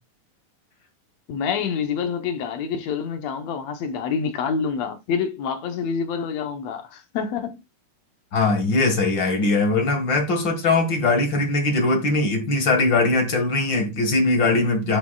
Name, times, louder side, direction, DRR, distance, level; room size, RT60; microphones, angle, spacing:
voice 1, 1.3-7.6, left 6 dB, 65° left, 2.1 m, -27 dB
voice 2, 8.3-15.0, left 2 dB, 45° left, 2.1 m, -21 dB
11.5 x 6.0 x 2.3 m
omnidirectional pair, 3.5 m